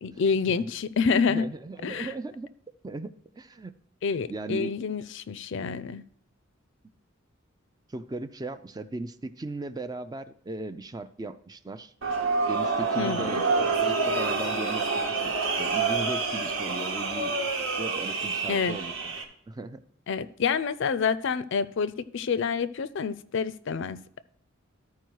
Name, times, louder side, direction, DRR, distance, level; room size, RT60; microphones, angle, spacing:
voice 1, 0.0-1.5 1.8-2.1 4.0-6.0 13.0-13.4 18.5-18.8 20.1-24.2, left 5 dB, 65° left, 0.5 m, -28 dB
voice 2, 1.3-2.5 2.8-3.7 4.3-4.7 7.9-11.9 12.5-15.3 15.6-17.3 17.8-19.1 19.5-19.8, right 2 dB, 20° right, 0.4 m, -37 dB
sound 1, 12.0-19.2, right 4 dB, 75° right, 1.3 m, -27 dB
13.0 x 4.7 x 4.6 m
head